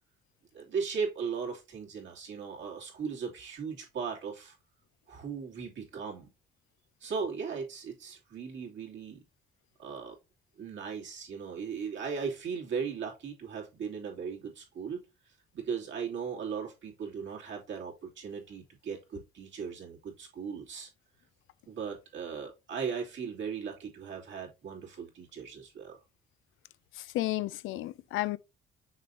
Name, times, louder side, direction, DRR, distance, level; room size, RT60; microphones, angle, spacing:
voice 1, 0.5-4.5 5.1-6.3 7.0-9.2 9.8-10.1 10.6-15.0 15.5-20.9 21.7-26.0, right 6 dB, 70° right, 2.8 m, -37 dB
voice 2, 27.0-28.4, left 16 dB, 85° left, 0.5 m, -32 dB
6.5 x 5.2 x 2.8 m
cardioid pair, 90°, 20 cm